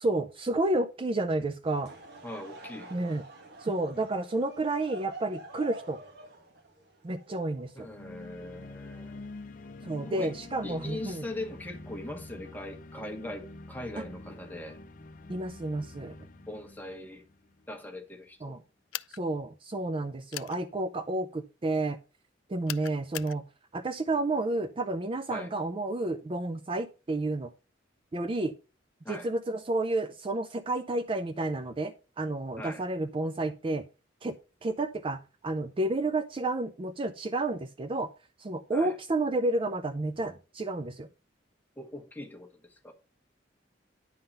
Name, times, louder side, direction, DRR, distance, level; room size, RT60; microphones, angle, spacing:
voice 1, 0.0-1.9 2.9-3.2 3.6-6.0 7.0-7.9 9.8-11.2 15.3-16.1 18.4-18.6 19.1-22.0 22.5-23.4 23.7-27.5 28.1-28.5 29.1-33.8 34.2-34.3 34.6-38.1 38.4-41.1, right 2 dB, 30° right, 0.4 m, -31 dB
Laughter / Crowd, 1.6-8.1, right 2 dB, 60° right, 1.8 m, -46 dB
voice 2, 2.2-2.9 7.7-9.3 10.0-10.3 10.6-14.8 16.5-17.2 17.7-18.6 25.3-25.5 29.0-29.3 32.6-32.8 38.7-38.9 41.8-42.9, left 1 dB, 10° left, 1.3 m, -41 dB
sound 1, 7.9-17.9, left 2 dB, 45° left, 0.6 m, -46 dB
sound 2, 18.9-19.2 20.3-20.6 22.7-23.4, left 16 dB, 85° left, 0.3 m, -38 dB
10.0 x 3.8 x 5.5 m
head